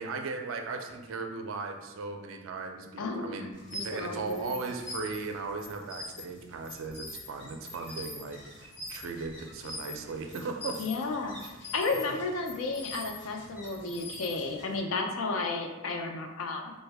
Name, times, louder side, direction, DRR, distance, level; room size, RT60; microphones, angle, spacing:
voice 1, 0.0-10.8, right 4 dB, 75° right, 4 dB, 0.4 m, -37 dB
voice 2, 3.0-3.5 3.7-4.5 10.8-11.4 11.7-16.7, left 3 dB, 80° left, 3 dB, 0.4 m, -33 dB
sound 1, 3.5-14.8, left 2 dB, 55° left, 0.9 m, -44 dB
3.4 x 2.1 x 3.3 m, 1.1 s
head